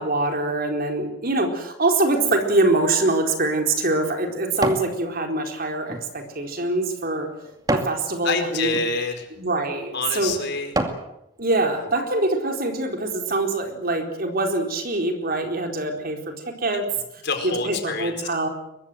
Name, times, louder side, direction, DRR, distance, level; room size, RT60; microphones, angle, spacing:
voice 1, 0.0-7.3 7.7-8.8 9.4-10.3 11.4-16.9 17.4-18.5, right 2 dB, 50° right, 4 dB, 4.2 m, -24 dB
sound 1, 3.3-4.9 5.4-8.0 8.6-8.9 9.6-9.7 10.2-11.1 11.6-11.7, right 1 dB, 20° right, 2.3 m, -30 dB
voice 2, 8.2-9.3 9.9-10.7 11.7-11.8 17.2-18.1, left 4 dB, 60° left, 6 dB, 4.8 m, -27 dB
23.0 x 22.5 x 7.8 m, 0.86 s
head